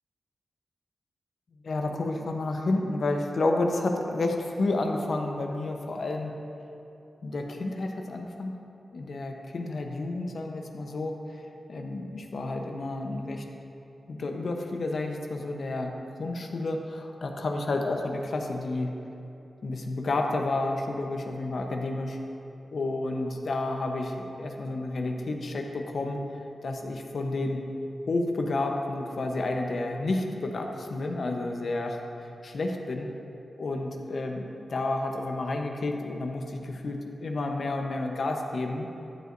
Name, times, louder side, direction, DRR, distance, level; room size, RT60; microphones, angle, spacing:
voice 1, 1.6-6.3 7.2-8.5 8.9-13.4 14.1-18.9 19.6-22.2 22.7-26.2 26.6-27.6 28.1-32.0 32.4-33.1 33.6-38.9, left 2 dB, 70° left, 3 dB, 0.9 m, -30 dB
13.5 x 8.3 x 2.6 m, 2.9 s
cardioid pair, 50°, 0 cm